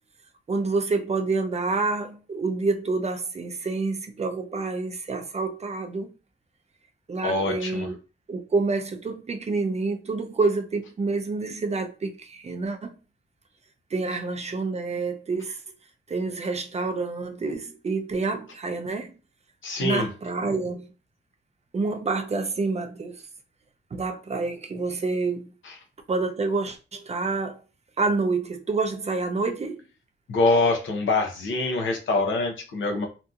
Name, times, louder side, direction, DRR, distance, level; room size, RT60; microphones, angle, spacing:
voice 1, 0.5-6.1 7.1-8.0 8.3-12.9 13.9-15.6 16.1-19.1 19.8-20.9 21.7-23.2 23.9-25.5 26.1-27.6 28.0-29.8, right 3 dB, 35° right, 0.4 m, -28 dB
voice 2, 7.2-7.9 19.6-20.1 25.6-25.7 30.3-33.1, left 3 dB, 80° left, 0.7 m, -24 dB
2.8 x 2.4 x 2.3 m
wide cardioid pair, 120°, 20 cm